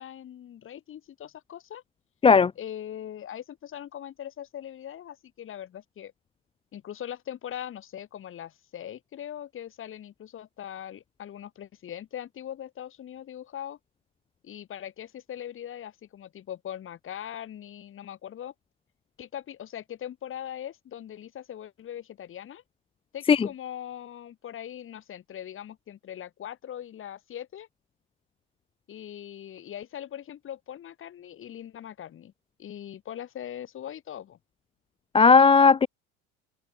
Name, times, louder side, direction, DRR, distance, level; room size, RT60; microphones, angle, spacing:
voice 1, 0.0-1.8 2.6-6.1 6.7-13.8 14.4-18.5 19.2-22.6 23.1-27.7 28.9-32.3 32.6-34.4, left 10 dB, 35° left, 2.8 m, -40 dB
voice 2, 35.1-35.9, left 5 dB, 15° left, 0.6 m, -16 dB
supercardioid pair, 125°, 36 cm